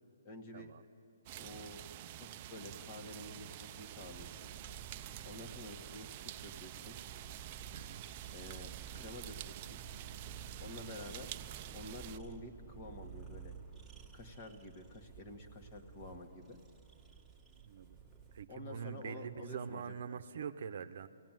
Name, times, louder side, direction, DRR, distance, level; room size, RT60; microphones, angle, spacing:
voice 1, 0.2-0.7 1.3-1.8 2.2-4.5 5.2-7.0 8.3-9.8 10.6-11.4 11.7-13.5 14.1-16.6 18.5-20.2, left 1 dB, 30° left, 4 dB, 1.8 m, -49 dB
sound 1, 1.3-12.2, right 13 dB, 30° right, 0.5 m, -48 dB
sound 2, 4.0-18.4, right 6 dB, ahead, 1.8 m, -53 dB
voice 2, 7.7-8.0 17.5-18.0 18.3-21.1, right 7 dB, 60° right, 10 dB, 0.8 m, -44 dB
23.0 x 17.0 x 9.2 m, 2.6 s
hypercardioid pair, 160°, 0 cm